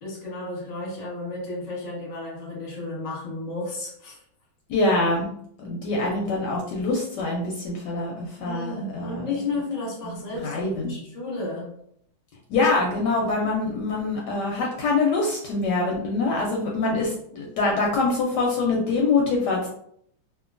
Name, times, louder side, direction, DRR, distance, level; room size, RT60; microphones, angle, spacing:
voice 1, 0.0-4.2 8.4-11.7, left 2 dB, 30° left, -5 dB, 0.8 m, -33 dB
voice 2, 4.7-5.3 5.6-9.3 10.4-10.9 12.5-19.7, left 3 dB, 75° left, -2 dB, 1.1 m, -24 dB
2.9 x 2.4 x 2.4 m, 0.69 s
omnidirectional pair, 2.1 m